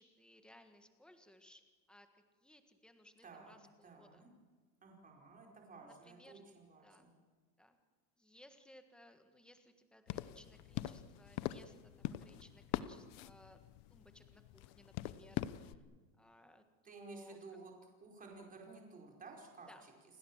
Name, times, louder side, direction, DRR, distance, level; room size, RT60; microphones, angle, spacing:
voice 1, 0.0-1.6 1.9-4.2 5.8-6.4 6.8-7.1 7.6-7.8 8.2-13.6 13.9-15.8 16.2-17.4 19.7-19.8, left 1 dB, ahead, 7 dB, 1.6 m, -62 dB
voice 2, 3.2-4.3 4.8-7.1 16.8-19.9, right 3 dB, 15° right, 0 dB, 5.0 m, -54 dB
sound 1, 10.1-15.8, left 14 dB, 40° left, 0.9 m, -43 dB
29.5 x 20.5 x 7.4 m, 1.4 s
supercardioid pair, 165°, 49 cm